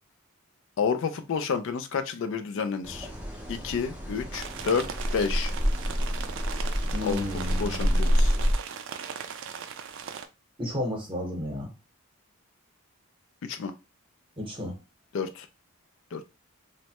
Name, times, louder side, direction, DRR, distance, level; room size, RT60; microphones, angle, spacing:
voice 1, 0.8-3.1 3.5-4.9 5.1-5.5 7.0-7.3 7.6-8.3 13.4-13.7 15.1-15.5 16.1-16.2, left 5 dB, 60° left, 9 dB, 0.3 m, -29 dB
sound 1, 2.8-8.5, equal, 5° right, 0.5 m, -28 dB
sound 2, 4.3-10.3, right 7 dB, 55° right, 0.3 m, -39 dB
voice 2, 6.9-8.0 10.6-11.7 14.4-14.8, left 1 dB, 25° right, 1 dB, 0.8 m, -33 dB
3.1 x 2.1 x 2.8 m, 0.27 s
head